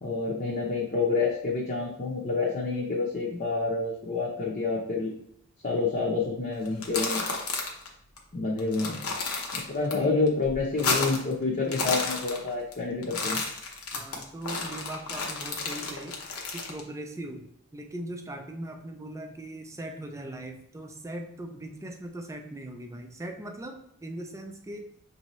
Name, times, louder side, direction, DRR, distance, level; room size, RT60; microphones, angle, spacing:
voice 1, 0.0-5.1 5.6-7.2 8.3-9.0 9.5-13.4, left 3 dB, 40° left, -4 dB, 0.7 m, -28 dB
sound 1, 6.7-7.9 8.2-8.3 8.6-9.9 10.3-11.3 11.6-12.7 13.0-16.8, left 3 dB, 75° left, 0.9 m, -31 dB
voice 2, 9.9-10.3 13.9-16.2 16.5-17.5 17.7-24.9, right 1 dB, 15° right, 4 dB, 0.4 m, -39 dB
6.0 x 2.7 x 3.1 m, 0.70 s
head